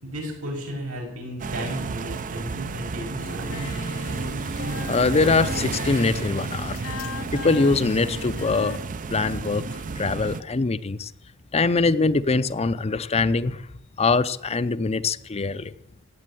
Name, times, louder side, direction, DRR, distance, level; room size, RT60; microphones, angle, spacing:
voice 1, 0.0-3.7, right 1 dB, 85° right, 0 dB, 6.7 m, -34 dB
sound 1, 1.4-10.4, right 4 dB, 40° right, 0.5 m, -31 dB
Singing, 3.2-8.8, left 6 dB, 80° left, 0.7 m, -38 dB
voice 2, 4.9-6.8 7.3-8.8 9.1-11.1 11.5-13.7 14.0-15.7, left 3 dB, 30° left, 13 dB, 0.5 m, -23 dB
16.5 x 8.4 x 9.9 m, 0.87 s
head